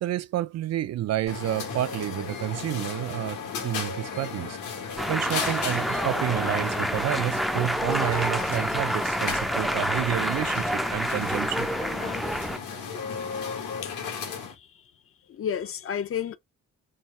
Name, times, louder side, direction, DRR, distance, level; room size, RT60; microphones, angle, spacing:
voice 1, 0.0-3.4 3.6-4.6 5.1-11.7, right 13 dB, 60° right, 0.5 m, -29 dB
sound 1, 1.3-14.5, left 6 dB, 80° left, 1.6 m, -35 dB
sound 2, 5.0-12.6, equal, ahead, 0.4 m, -28 dB
voice 2, 15.3-16.4, left 8 dB, 45° left, 0.6 m, -31 dB
4.3 x 2.2 x 3.3 m
cardioid pair, 90°, 30 cm